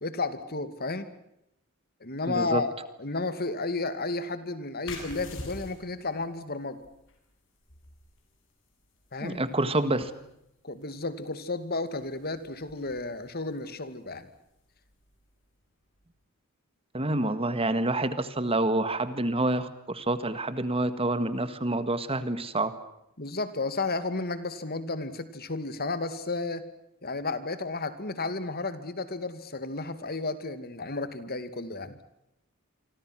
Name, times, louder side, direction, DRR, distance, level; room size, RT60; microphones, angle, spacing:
voice 1, 0.0-1.1 2.0-2.7 3.0-6.8 9.1-9.4 10.6-14.3 23.2-26.7 27.0-32.0, left 3 dB, 45° left, 12 dB, 2.4 m, -32 dB
voice 2, 2.3-2.6 9.2-10.1 16.9-22.7, right 2 dB, 25° right, 12 dB, 1.7 m, -27 dB
sound 1, 4.8-16.1, left 2 dB, 60° left, 7.5 m, -49 dB
28.0 x 25.5 x 6.2 m, 0.82 s
head